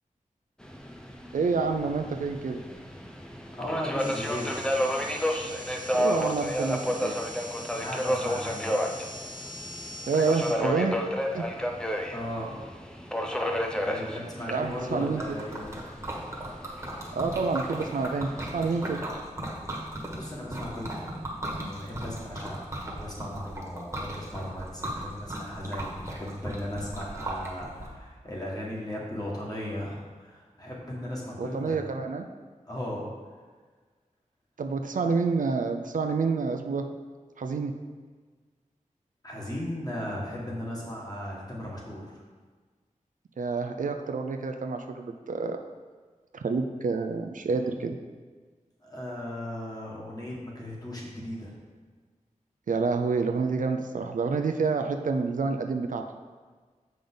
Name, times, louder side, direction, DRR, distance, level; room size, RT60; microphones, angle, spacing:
Subway metro underground, 0.6-19.0, equal, 5° left, 0.5 m, -32 dB
voice 1, 1.3-2.6 5.9-7.1 10.1-11.0 11.3-11.5 14.5-15.2 17.1-19.0 31.4-32.3 34.6-36.9 37.4-37.7 43.4-45.6 46.3-48.0 52.7-56.1, right 4 dB, 75° right, 5 dB, 0.5 m, -28 dB
voice 2, 3.6-4.5 7.8-8.7 11.6-11.7 12.1-12.5 13.8-15.7 20.1-21.1 21.5-31.8 32.6-33.1 39.2-42.2 48.8-51.6, equal, 30° left, -4 dB, 1.7 m, -36 dB
sound 1, 4.0-10.5, left 1 dB, 85° left, 0.9 m, -43 dB
Liquid, 14.7-27.9, right 1 dB, 20° right, 1.5 m, -37 dB
7.0 x 5.2 x 3.9 m, 1.4 s
wide cardioid pair, 85°, 14 cm